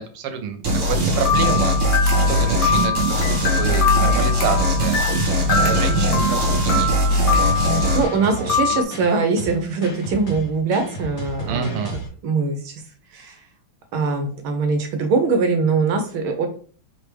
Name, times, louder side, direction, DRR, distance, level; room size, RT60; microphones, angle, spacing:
voice 1, 0.0-1.8 2.2-7.1 8.2-8.8 11.5-12.0, right 7 dB, 90° right, 7 dB, 1.7 m, -29 dB
sound 1, 0.6-8.0, equal, 50° right, 1.7 m, -20 dB
sound 2, 1.3-8.8, left 5 dB, 80° left, 1.7 m, -24 dB
sound 3, 4.9-12.1, right 2 dB, 35° left, 1.2 m, -33 dB
voice 2, 7.9-11.9 12.2-12.8 13.1-13.4 13.9-16.5, right 4 dB, 75° right, 5 dB, 1.5 m, -22 dB
4.6 x 3.3 x 3.3 m, 0.43 s
omnidirectional pair, 2.4 m